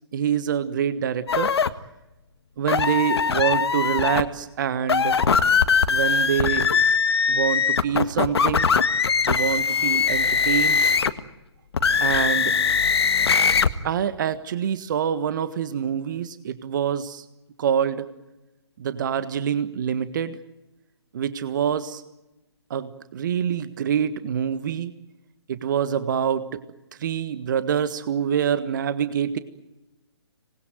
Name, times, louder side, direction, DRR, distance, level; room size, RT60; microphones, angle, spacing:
voice 1, 0.1-1.5 2.6-5.2 5.9-6.7 7.3-8.7 9.2-10.8 12.0-12.6 13.8-17.2 17.6-18.1 18.8-20.4 21.1-22.0 22.7-24.9 25.5-26.6 27.0-29.4, right 8 dB, 45° right, 12 dB, 1.5 m, -25 dB
sound 1, 1.3-1.7 2.7-4.2 4.8-11.2 11.7-13.7, left 6 dB, 65° left, 1.6 m, -21 dB
25.5 x 20.5 x 9.3 m, 0.99 s
figure-of-eight pair, 140°, 15 cm